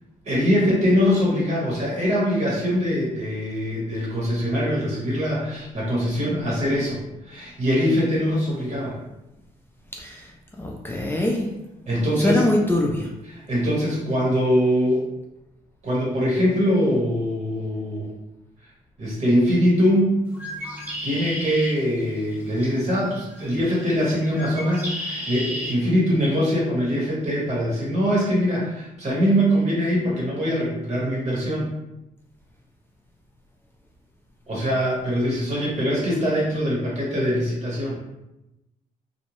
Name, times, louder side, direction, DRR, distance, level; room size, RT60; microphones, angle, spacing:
voice 1, 0.2-9.0 11.9-12.5 13.3-15.0 15.8-18.1 19.0-20.1 21.0-31.7 34.5-38.0, equal, 50° right, -4 dB, 1.2 m, -22 dB
voice 2, 9.9-11.5 12.2-13.1, left 1 dB, 15° left, -2 dB, 0.4 m, -24 dB
Bird, 20.3-25.7, equal, 15° right, 0.8 m, -35 dB
2.7 x 2.1 x 3.0 m, 0.94 s
cardioid pair, 95°, 15 cm